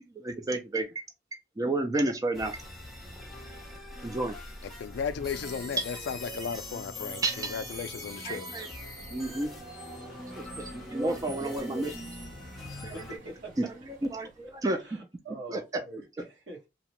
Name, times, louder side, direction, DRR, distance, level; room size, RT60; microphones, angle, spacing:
voice 1, 0.2-1.0 1.6-2.5 4.0-4.3 5.8-5.9 6.5-6.6 7.2-7.8 8.2-8.7 9.1-9.5 10.4-12.0 12.8-13.0 13.6-13.7 14.1-14.8 15.5-15.6, right 2 dB, 20° right, 0.4 m, -31 dB
sound 1, 2.3-13.2, left 1 dB, ahead, 0.8 m, -43 dB
voice 2, 4.8-8.5, left 6 dB, 65° left, 0.3 m, -35 dB
Subway metro underground, 8.6-14.8, right 1 dB, 50° right, 0.8 m, -50 dB
voice 3, 12.9-13.7 14.4-16.7, right 2 dB, 70° right, 1.3 m, -44 dB
2.8 x 2.1 x 2.9 m
head